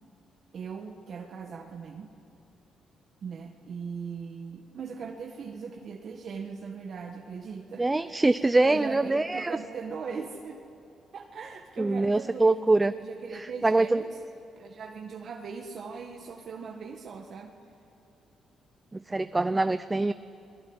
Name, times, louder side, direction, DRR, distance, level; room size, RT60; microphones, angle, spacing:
voice 1, 0.5-2.1 3.2-8.2 8.6-10.6 11.1-14.2 14.6-17.6, right 5 dB, 55° right, 2 dB, 1.7 m, -39 dB
voice 2, 7.8-9.5 11.8-12.9 13.4-14.0 18.9-20.1, right 2 dB, 15° right, 12 dB, 0.6 m, -24 dB
28.5 x 20.0 x 9.8 m, 2.8 s
cardioid pair, 90°, 0 cm